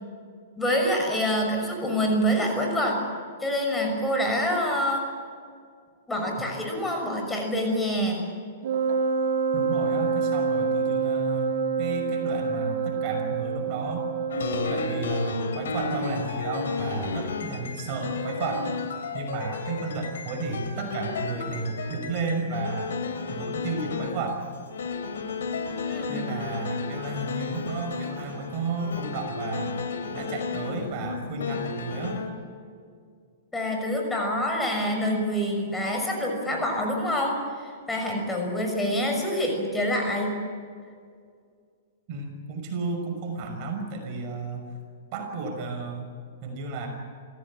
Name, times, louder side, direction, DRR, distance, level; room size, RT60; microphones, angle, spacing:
voice 1, 0.6-3.0 3.4-5.1 6.1-8.3 25.8-26.3 33.5-40.4, equal, 10° left, 1 dB, 6.1 m, -26 dB
Wind instrument woodwind instrument, 8.6-15.3, right 5 dB, 70° right, 2.4 m, -27 dB
voice 2, 9.5-14.1 14.7-18.7 19.1-22.9 23.3-24.5 26.1-29.8 30.1-32.2 42.1-44.7 45.1-46.1 46.4-46.9, right 3 dB, 45° right, 3 dB, 5.9 m, -32 dB
sound 1, 14.3-24.3 24.7-32.3, left 4 dB, 80° left, 3.7 m, -33 dB
26.0 x 16.5 x 8.8 m, 2.1 s
hypercardioid pair, 125°, 0 cm